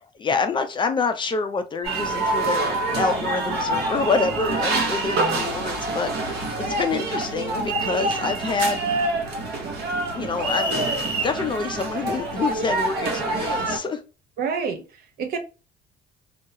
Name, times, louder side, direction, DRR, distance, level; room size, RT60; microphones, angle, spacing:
voice 1, 0.2-8.9 10.1-10.8 11.2-14.0, left 4 dB, 30° left, 0.4 m, -27 dB
sound 1, 1.8-13.8, right 2 dB, 80° right, 1.0 m, -26 dB
voice 2, 14.4-15.4, right 6 dB, 65° right, 0.6 m, -29 dB
2.3 x 2.1 x 2.7 m
cardioid pair, 110°, 17 cm